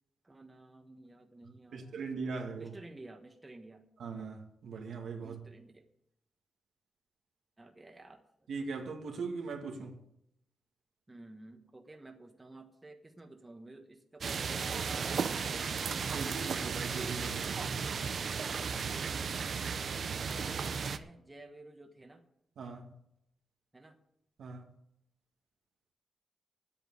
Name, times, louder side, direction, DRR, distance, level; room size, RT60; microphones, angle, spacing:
voice 1, 0.2-3.8 5.2-5.9 7.6-8.5 11.1-15.8 18.9-19.7 20.3-22.2 23.7-24.0, right 2 dB, 20° right, 1.3 m, -53 dB
voice 2, 1.7-2.7 4.0-5.4 8.5-10.0 16.1-18.0 22.6-22.9 24.4-24.6, right 4 dB, 80° right, 1.9 m, -40 dB
sound 1, 14.2-21.0, right 6 dB, 55° right, 0.7 m, -35 dB
9.2 x 8.3 x 9.3 m
wide cardioid pair, 125°, 0 cm